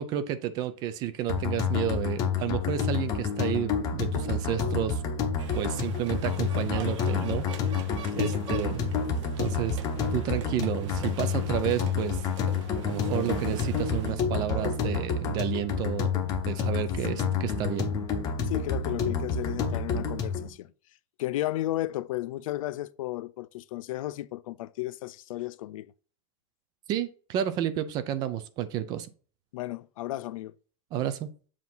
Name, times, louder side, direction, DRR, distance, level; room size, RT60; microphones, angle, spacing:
voice 1, 0.0-5.0 5.5-7.9 8.2-8.8 9.4-9.8 10.1-12.2 12.8-16.1 16.4-17.9 26.9-29.1 30.9-31.3, right 10 dB, 25° right, 0.4 m, -31 dB
sound 1, 1.3-20.5, left 6 dB, 20° left, 0.8 m, -29 dB
sound 2, 5.4-14.1, right 7 dB, 60° right, 1.1 m, -42 dB
voice 2, 8.1-8.6 18.4-20.7 21.2-25.9 29.5-30.5, left 15 dB, 75° left, 0.5 m, -34 dB
7.3 x 2.8 x 5.8 m
supercardioid pair, 175°, 17 cm